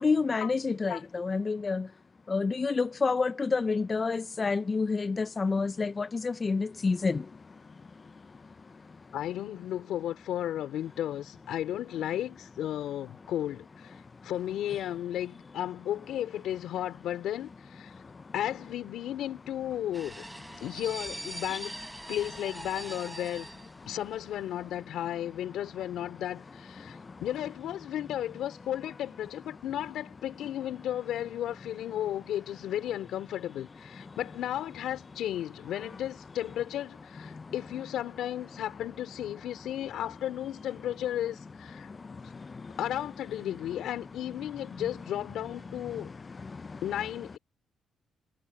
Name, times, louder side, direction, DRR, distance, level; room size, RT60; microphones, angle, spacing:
voice 1, 0.0-1.9 2.3-7.2, left 4 dB, 30° left, 0.6 m, -28 dB
voice 2, 9.1-17.9 18.3-20.2 20.6-21.8 22.1-23.5 23.9-41.9 42.8-46.1 46.8-47.4, left 11 dB, 80° left, 3.9 m, -34 dB
sound 1, 19.9-24.3 24.6-24.7, right 1 dB, 10° right, 1.2 m, -42 dB
cardioid pair, 90°, 0 cm